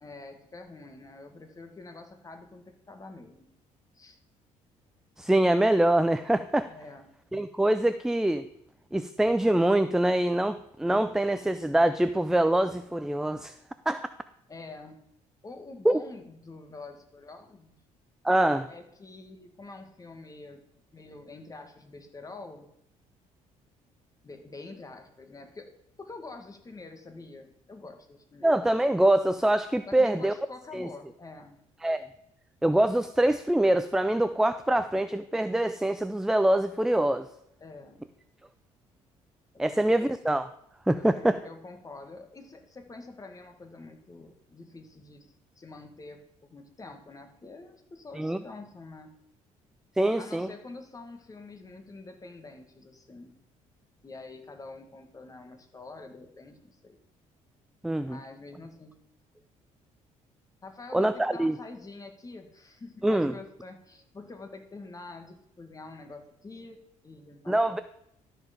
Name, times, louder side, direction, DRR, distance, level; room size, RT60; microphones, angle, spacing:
voice 1, 0.0-3.5 3.9-4.2 6.7-7.1 14.5-15.0 15.4-17.7 18.7-20.6 20.9-22.7 24.2-25.7 26.0-28.5 29.9-31.6 37.6-38.1 39.5-40.0 41.0-49.1 50.2-53.3 54.0-57.0 58.0-58.9 60.6-67.8, left 3 dB, 25° left, 6 dB, 1.5 m, -46 dB
voice 2, 5.2-6.7 7.3-8.5 8.9-13.5 13.9-14.1 15.9-16.0 18.2-18.7 28.4-30.3 30.7-30.9 31.8-32.0 32.6-37.3 39.6-40.5 40.9-41.4 48.2-48.4 50.0-50.5 57.8-58.2 60.9-61.6 63.0-63.3 67.5-67.8, right 1 dB, 5° right, 12 dB, 0.4 m, -24 dB
12.5 x 4.6 x 5.1 m, 0.75 s
cardioid pair, 95°, 14 cm